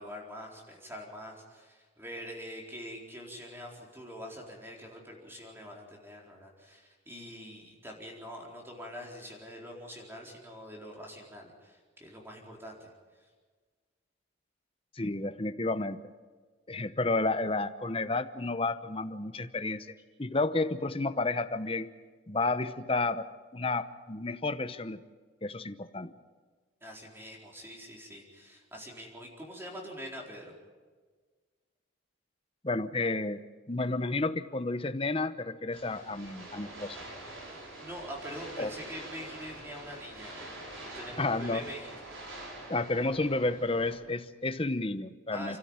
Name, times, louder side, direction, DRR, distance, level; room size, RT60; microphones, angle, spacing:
voice 1, 0.0-12.9 13.2-13.3 26.8-30.5 37.5-40.5 40.8-41.9 42.2-42.7 45.3-45.6, equal, 10° right, -1 dB, 4.3 m, -45 dB
voice 2, 14.9-16.0 16.7-19.9 20.2-21.9 22.3-23.3 23.5-25.0 25.4-26.1 32.6-33.4 33.7-37.0 38.6-38.7 41.2-41.6 42.7-45.6, left 2 dB, 25° left, 10 dB, 0.9 m, -31 dB
sound 1, 35.7-43.9, right 1 dB, 85° right, 6.5 m, -45 dB
29.5 x 13.0 x 8.9 m, 1.5 s
head